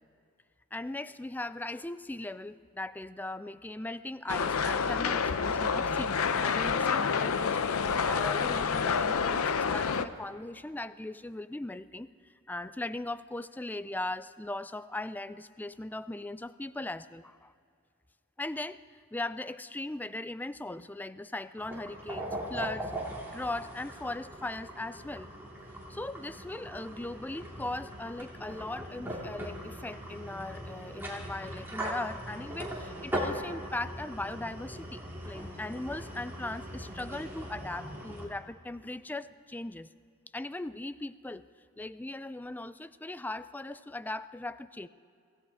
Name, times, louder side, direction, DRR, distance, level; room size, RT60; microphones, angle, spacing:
voice 1, 0.7-12.1 12.5-17.5 18.4-18.8 19.1-22.9 23.3-25.3 25.9-39.9 40.3-41.4 41.8-44.9, left 2 dB, 10° left, 14 dB, 0.3 m, -39 dB
sound 1, 4.3-10.1, left 6 dB, 85° left, 0.6 m, -28 dB
sound 2, 21.6-38.3, right 1 dB, 10° right, 2.7 m, -40 dB
26.0 x 15.5 x 3.6 m, 2.4 s
head